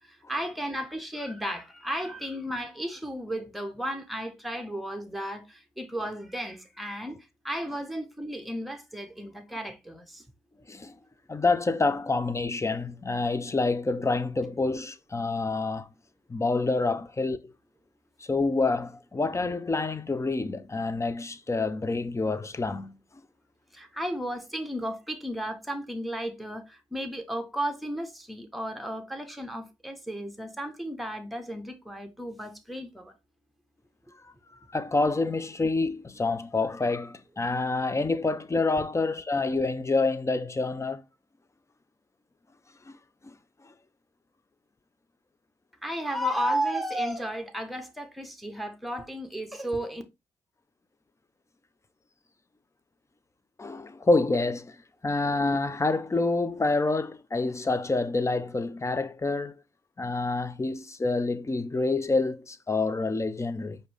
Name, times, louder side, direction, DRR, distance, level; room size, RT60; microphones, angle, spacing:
voice 1, 0.1-7.2 7.4-10.2 23.7-33.1 45.8-50.0, equal, ahead, 1.2 m, -34 dB
voice 2, 11.3-15.9 16.3-17.5 18.2-22.9 34.2-34.3 34.7-41.0 42.9-43.0 43.2-43.3 53.6-54.8 55.0-59.5 60.0-63.8, left 3 dB, 20° left, 0.6 m, -27 dB
4.9 x 2.8 x 3.5 m
hypercardioid pair, 45°, 13 cm